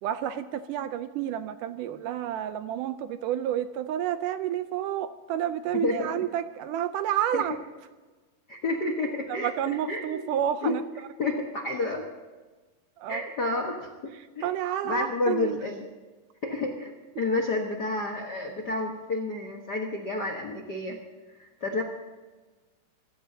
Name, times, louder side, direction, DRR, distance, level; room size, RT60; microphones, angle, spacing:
voice 1, 0.0-7.6 9.3-10.8 13.0-13.2 14.1-15.6, right 10 dB, 80° right, 10 dB, 2.0 m, -30 dB
voice 2, 5.7-6.2 7.3-7.4 8.5-10.2 10.6-10.8 11.2-12.0 13.1-14.5 14.8-15.9 16.4-21.0 21.4-21.8, left 2 dB, 65° left, 1 dB, 1.0 m, -30 dB
25.5 x 15.5 x 2.8 m, 1.3 s
omnidirectional pair, 4.0 m